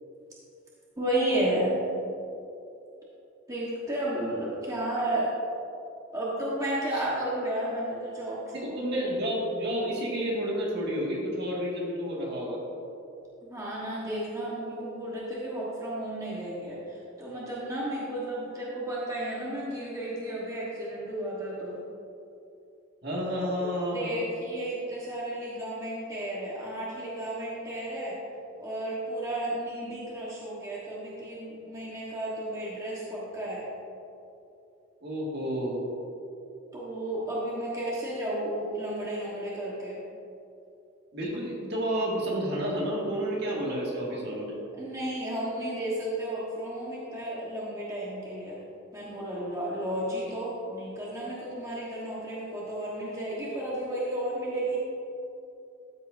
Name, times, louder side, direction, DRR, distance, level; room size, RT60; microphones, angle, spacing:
voice 1, 1.0-1.7 3.5-5.3 6.1-8.8 13.4-21.8 23.6-23.7 23.9-28.2 28.6-33.7 36.7-40.0 44.7-48.6 48.9-54.8, right 1 dB, 15° right, -7 dB, 1.2 m, -33 dB
voice 2, 8.5-12.6 23.0-24.1 35.0-35.8 41.1-44.6, equal, 50° right, -4 dB, 1.9 m, -30 dB
13.0 x 7.5 x 2.6 m, 2.7 s
head